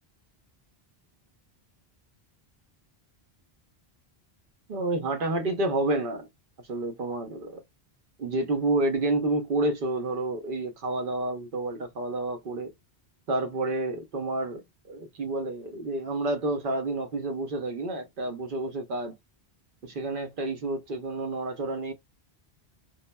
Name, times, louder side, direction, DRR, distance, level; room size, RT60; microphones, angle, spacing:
voice 1, 4.7-6.3 6.7-7.6 8.2-12.7 13.3-19.1 19.8-21.9, right 2 dB, 55° right, 0.9 m, -29 dB
2.9 x 2.2 x 2.2 m
omnidirectional pair, 1.1 m